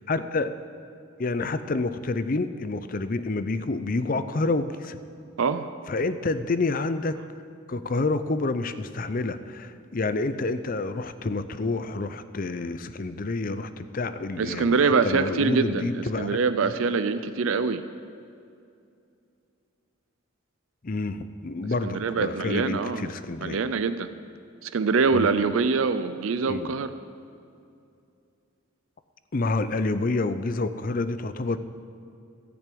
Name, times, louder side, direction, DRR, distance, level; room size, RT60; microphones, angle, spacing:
voice 1, 0.1-0.6 1.2-5.0 5.9-7.2 7.7-16.7 20.8-23.6 25.1-25.3 26.5-26.7 29.3-31.6, left 3 dB, 40° left, 12 dB, 0.5 m, -28 dB
voice 2, 5.4-5.7 14.4-17.8 21.8-23.1 23.4-24.1 24.6-26.9, right 4 dB, 75° right, 11 dB, 0.5 m, -24 dB
14.5 x 6.0 x 8.5 m, 2.5 s
head